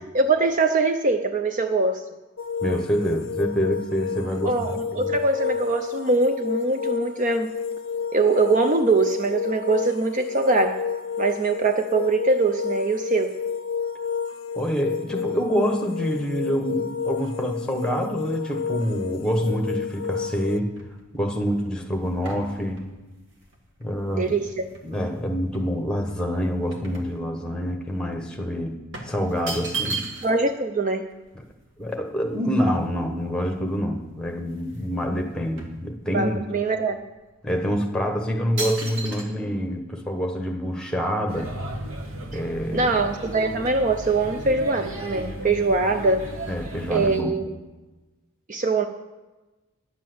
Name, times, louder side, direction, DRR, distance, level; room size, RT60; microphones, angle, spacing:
voice 1, 0.1-2.0 4.4-7.5 8.1-10.8 11.2-13.4 24.1-24.6 30.2-31.1 36.1-37.0 42.3-42.4 42.7-46.3 46.9-47.5 48.5-48.9, right 3 dB, 35° right, 7 dB, 0.5 m, -22 dB
sound 1, 2.4-20.6, left 6 dB, 65° left, 0.6 m, -30 dB
voice 2, 2.6-5.1 14.5-20.7 21.1-22.8 23.8-24.3 24.8-28.8 29.1-30.1 31.8-36.4 37.4-41.5 42.3-42.9 46.5-47.4, equal, 5° left, 2 dB, 1.2 m, -26 dB
sound 2, 20.0-25.1 25.5-27.7 28.0-28.2 28.9-30.5 30.8-30.9 31.1-33.3 33.8-33.9 34.2-34.9 35.2-36.4 37.0-37.2 37.8-38.0 38.6-39.2, right 3 dB, 60° right, 1.9 m, -36 dB
Male speech man speaking / Child speech kid speaking / Chatter, 41.3-47.2, right 1 dB, 75° right, 1.5 m, -35 dB
10.0 x 7.4 x 7.8 m, 1.1 s
head